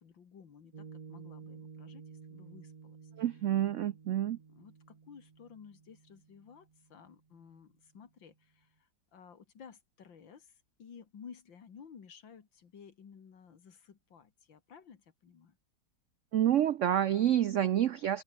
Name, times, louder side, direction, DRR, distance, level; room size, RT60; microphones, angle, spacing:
voice 1, 0.0-3.0 4.5-15.6, left 6 dB, 85° left, 2.8 m, -54 dB
Piano, 0.7-7.4, right 5 dB, 40° right, 0.5 m, -53 dB
voice 2, 3.2-4.4 16.3-18.2, right 11 dB, 80° right, 0.6 m, -28 dB
open air
omnidirectional pair, 2.0 m